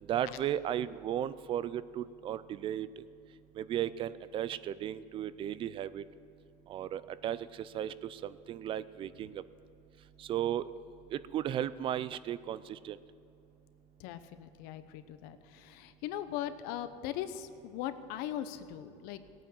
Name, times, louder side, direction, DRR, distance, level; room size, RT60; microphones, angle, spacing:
voice 1, 0.1-2.9 3.6-6.0 6.7-7.4 7.7-9.4 10.2-10.7 11.1-13.0, right 11 dB, 30° right, 17 dB, 0.4 m, -35 dB
voice 2, 14.0-19.2, left 11 dB, 65° left, 11 dB, 0.9 m, -40 dB
18.0 x 9.1 x 7.6 m, 2.7 s
cardioid pair, 160°, 16 cm